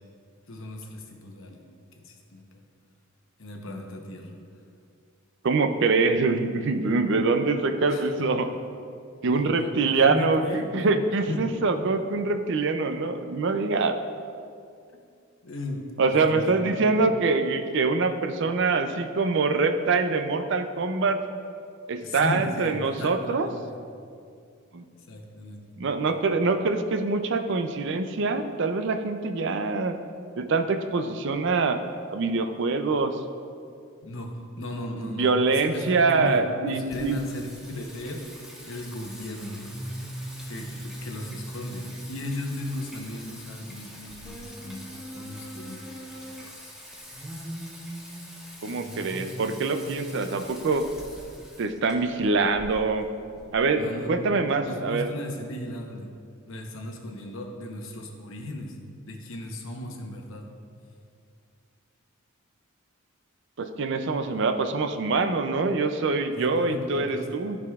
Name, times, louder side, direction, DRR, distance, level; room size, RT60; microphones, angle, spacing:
voice 1, 0.5-1.7 2.0-2.4 3.4-4.3 7.9-8.3 9.3-11.0 11.3-11.5 15.4-16.9 22.0-23.8 25.1-25.6 34.0-38.3 38.6-39.6 40.5-45.9 53.7-54.3 54.6-56.1 56.5-58.8 59.1-60.5 66.3-67.3, left 1 dB, 65° left, 2 dB, 0.9 m, -36 dB
voice 2, 5.4-8.5 9.2-14.0 16.0-21.2 21.9-23.5 24.7-24.8 25.8-30.0 30.4-31.8 32.1-33.2 35.0-37.2 48.6-50.9 51.6-53.1 53.5-55.1 63.6-67.6, right 3 dB, 55° right, 8 dB, 0.4 m, -24 dB
Singing, 36.9-54.5, equal, 5° right, 0.8 m, -41 dB
14.0 x 4.8 x 2.4 m, 2.4 s
head